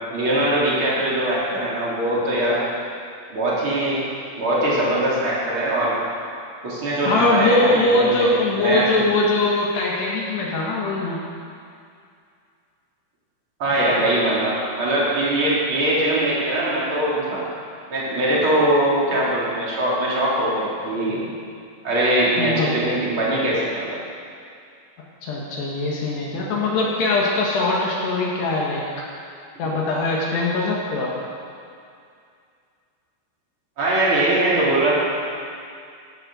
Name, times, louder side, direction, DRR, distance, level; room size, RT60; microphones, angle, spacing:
voice 1, 0.1-2.6 3.3-4.0 4.3-5.9 6.6-8.3 8.6-9.1 13.6-17.4 17.9-21.2 21.8-24.0 26.4-26.5 29.6-29.7 33.8-34.9, right 1 dB, 30° right, -7 dB, 3.3 m, -21 dB
voice 2, 7.0-11.2 22.4-22.8 25.2-28.8 29.6-31.2, left 2 dB, 65° left, -3 dB, 3.3 m, -21 dB
15.0 x 11.0 x 6.4 m, 2.4 s
omnidirectional pair, 5.8 m